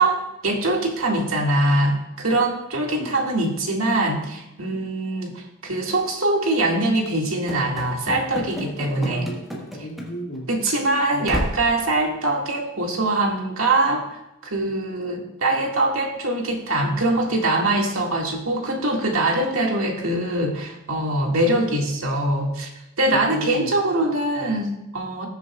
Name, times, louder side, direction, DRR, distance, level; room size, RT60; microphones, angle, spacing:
voice 1, 0.0-9.3 9.8-9.9 10.5-22.7 23.0-25.3, right 2 dB, 80° right, 0 dB, 1.9 m, -23 dB
Run / Slam, 7.5-10.4 10.6-10.8 11.2-11.7, equal, ahead, 1.3 m, -32 dB
voice 2, 8.9-10.5 23.1-23.7, equal, 60° left, 0 dB, 1.9 m, -33 dB
19.0 x 6.8 x 2.3 m, 0.91 s
head